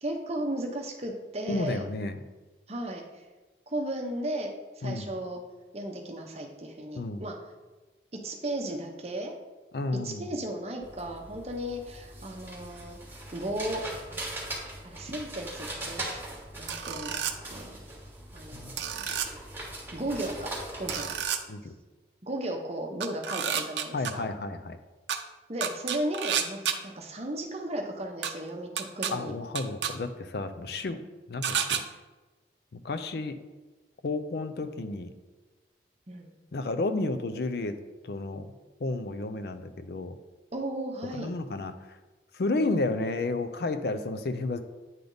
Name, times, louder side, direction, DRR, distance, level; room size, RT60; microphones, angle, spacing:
voice 1, 0.0-1.9 2.7-3.2 3.7-5.4 5.7-7.4 8.2-9.3 10.0-13.8 14.8-17.8 18.3-19.1 19.9-21.1 22.2-24.3 25.5-29.3 36.1-36.3 40.5-41.3, right 1 dB, 35° right, 2 dB, 0.8 m, -35 dB
voice 2, 1.5-2.2 4.8-5.1 6.9-7.2 9.7-10.2 18.5-18.7 21.5-21.7 23.9-24.8 29.1-31.0 31.3-31.8 32.7-33.4 34.0-35.1 36.5-37.7 38.0-38.5 38.8-40.2 41.1-41.7 42.3-44.6, left 2 dB, 65° left, 10 dB, 0.4 m, -31 dB
sound 1, 10.8-21.2, right 1 dB, 10° right, 1.2 m, -40 dB
sound 2, 16.7-17.3 18.8-19.3 20.9-21.4 23.0-24.1 25.1-25.2 25.6-26.8 28.2-28.3 28.8-29.1 29.6-29.9 31.4-31.8, right 8 dB, 85° right, 0.5 m, -30 dB
9.1 x 3.4 x 3.9 m, 1.2 s
head